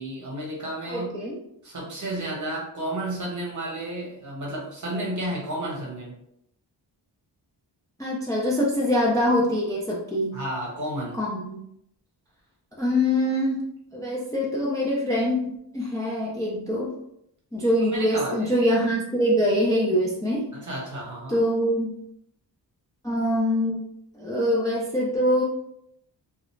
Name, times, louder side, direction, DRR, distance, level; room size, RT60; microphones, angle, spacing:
voice 1, 0.0-1.2 1.6-6.1 10.3-11.2 17.9-18.5 20.5-21.4, right 1 dB, 40° right, -3 dB, 1.0 m, -32 dB
voice 2, 0.9-1.4 8.0-10.4 11.2-11.6 12.8-13.6 13.9-16.9 17.5-20.5 21.3-21.9 23.0-23.8 24.1-25.4, equal, 10° left, -5 dB, 0.4 m, -24 dB
2.4 x 2.0 x 3.1 m, 0.76 s
wide cardioid pair, 125°, 44 cm